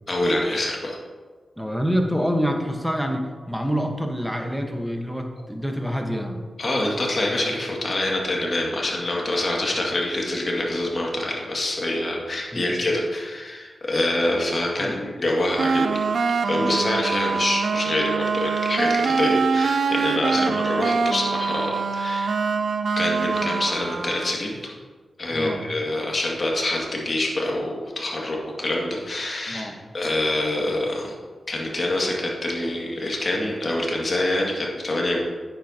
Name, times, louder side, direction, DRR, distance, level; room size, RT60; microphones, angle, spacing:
voice 1, 0.1-1.0 6.6-16.0 16.4-22.4 23.0-24.7 25.2-31.1 31.5-35.2, left 1 dB, 50° left, -2 dB, 2.1 m, -26 dB
voice 2, 1.6-6.4 12.5-12.8 14.8-15.0 16.6-16.8 20.3-20.6 25.3-25.6 29.5-29.8, equal, ahead, 3 dB, 1.3 m, -27 dB
sound 1, 15.6-24.4, right 5 dB, 75° right, 0.5 m, -24 dB
9.5 x 7.7 x 2.9 m, 1.4 s
cardioid pair, 45°, 0 cm